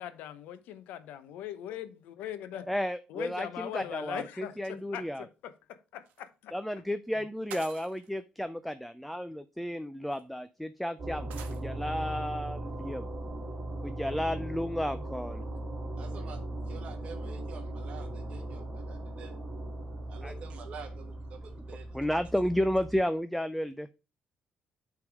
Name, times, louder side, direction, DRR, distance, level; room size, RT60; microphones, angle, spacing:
voice 1, 0.0-2.7 3.1-5.3 5.9-6.5, left 10 dB, 85° left, 0.8 m, -40 dB
voice 2, 2.7-5.3 6.5-13.1 13.8-15.5 20.2-20.3 21.9-23.9, equal, ahead, 0.3 m, -32 dB
sound 1, 6.0-6.2 7.5-8.1 9.3-9.4 10.1-10.2 11.3-11.6, right 9 dB, 90° right, 1.0 m, -46 dB
sound 2, 11.0-23.0, right 1 dB, 25° right, 2.5 m, -38 dB
voice 3, 16.0-16.4 16.7-19.3 20.1-22.0, right 6 dB, 50° right, 1.1 m, -48 dB
8.2 x 3.5 x 4.7 m
cardioid pair, 140°, 3 cm